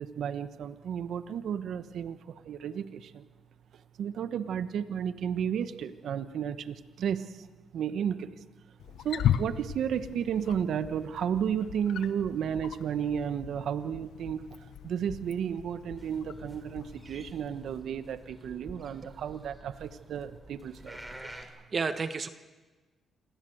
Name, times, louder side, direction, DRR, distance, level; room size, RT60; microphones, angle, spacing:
voice 1, 0.0-3.2 3.7-7.5 7.7-8.4 9.0-21.3, right 8 dB, 70° right, 11 dB, 1.1 m, -33 dB
Wild animals, 8.8-17.3, left 10 dB, 75° left, 1.0 m, -37 dB
sound 1, 16.0-21.4, equal, 10° right, 5.3 m, -49 dB
voice 2, 21.3-22.3, right 5 dB, 45° right, 10 dB, 1.4 m, -32 dB
27.5 x 21.0 x 7.9 m, 1.3 s
supercardioid pair, 60°, 0 cm